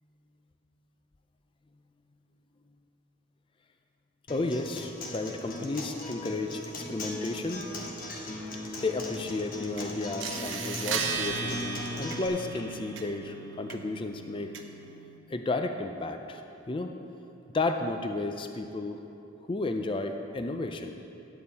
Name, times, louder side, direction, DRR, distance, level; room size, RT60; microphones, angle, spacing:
Acoustic guitar, 4.3-12.3, left 1 dB, 45° left, 1.2 m, -39 dB
voice 1, 4.3-7.6 8.8-14.5 15.3-16.4 16.7-16.9 17.5-19.0 19.4-20.9, left 2 dB, 25° left, 6 dB, 0.4 m, -32 dB
sound 1, 7.2-12.7, left 2 dB, 75° left, 0.9 m, -52 dB
sound 2, 9.8-9.9 10.2-15.2, right 6 dB, 70° right, 0.7 m, -36 dB
11.0 x 8.7 x 4.1 m, 2.8 s
head